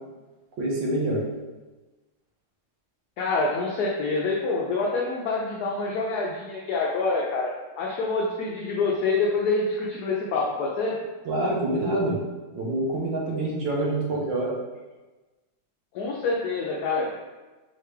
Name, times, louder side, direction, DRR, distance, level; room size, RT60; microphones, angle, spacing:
voice 1, 0.6-1.2 11.2-12.2 12.5-14.5, right 1 dB, 80° right, -3 dB, 1.8 m, -26 dB
voice 2, 3.2-11.0 15.9-17.1, left 3 dB, 70° left, -3 dB, 1.0 m, -26 dB
4.7 x 3.3 x 3.2 m, 1.2 s
omnidirectional pair, 2.1 m